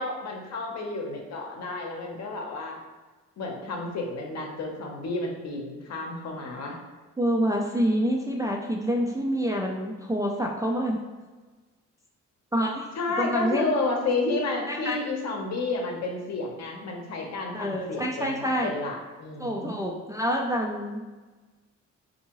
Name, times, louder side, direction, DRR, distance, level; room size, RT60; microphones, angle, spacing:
voice 1, 0.0-2.8 3.4-6.8 13.0-19.7, left 3 dB, 60° left, 1 dB, 0.8 m, -31 dB
voice 2, 7.2-11.0 12.5-12.9 13.2-13.7 14.7-15.0 17.5-18.7 19.4-21.1, equal, 10° right, -2 dB, 0.3 m, -27 dB
3.5 x 2.7 x 2.9 m, 1.3 s
cardioid pair, 90°, 30 cm